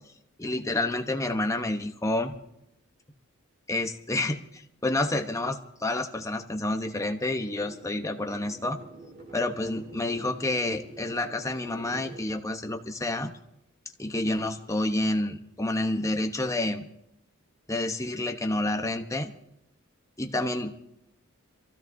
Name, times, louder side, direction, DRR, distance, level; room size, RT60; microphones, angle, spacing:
voice 1, 0.4-2.3 3.7-8.8 9.3-13.3 14.0-16.9 17.7-19.3 20.2-20.7, left 2 dB, 15° left, 5 dB, 0.9 m, -29 dB
sound 1, 7.2-12.2, right 2 dB, 55° right, 4.1 m, -47 dB
26.5 x 15.5 x 2.7 m, 0.81 s
head